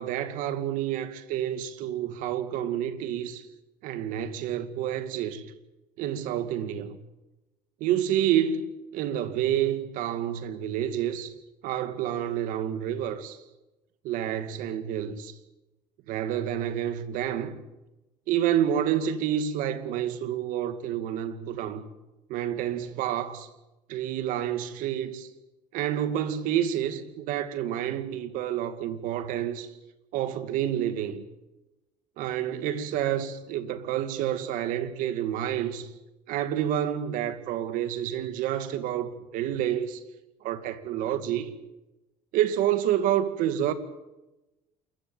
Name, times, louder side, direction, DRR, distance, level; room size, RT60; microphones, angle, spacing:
voice 1, 0.0-3.5 3.8-5.4 6.0-7.0 7.8-11.3 11.6-13.4 14.0-15.3 16.1-17.6 18.3-21.8 22.3-23.5 23.9-25.3 25.7-29.7 30.1-31.2 32.2-35.9 36.3-40.0 40.4-41.5 42.3-43.7, right 10 dB, 80° right, 2.2 m, -29 dB
28.5 x 15.0 x 8.9 m
cardioid pair, 120°, 14 cm